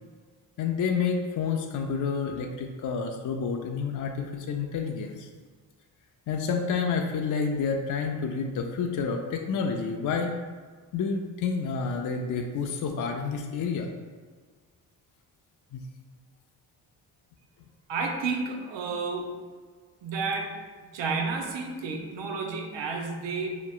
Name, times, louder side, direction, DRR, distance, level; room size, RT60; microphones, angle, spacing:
voice 1, 0.6-5.3 6.3-10.3 10.9-13.9 15.7-15.9, left 5 dB, 45° left, 3 dB, 0.5 m, -29 dB
voice 2, 17.9-19.3 20.0-20.5 20.9-23.5, right 4 dB, 70° right, 2 dB, 0.8 m, -31 dB
4.3 x 2.9 x 2.4 m, 1.5 s
supercardioid pair, 50°, 46 cm